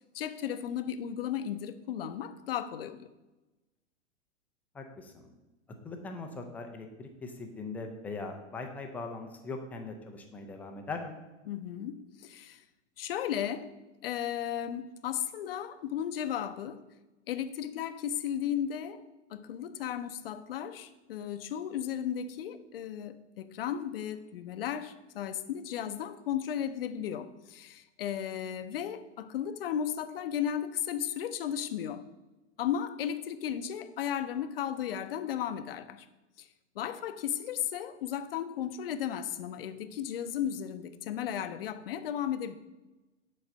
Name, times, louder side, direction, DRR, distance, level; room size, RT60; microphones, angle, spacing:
voice 1, 0.1-3.1 11.5-12.6 13.0-13.7 14.0-16.8 17.3-19.0 19.3-32.0 32.6-36.1 36.4-36.5 36.8-42.6, left 9 dB, 50° left, 0.6 m, -35 dB
voice 2, 4.7-5.3 5.8-11.2, left 3 dB, 5° left, 0.4 m, -40 dB
7.6 x 4.0 x 6.5 m
figure-of-eight pair, 105°, 37 cm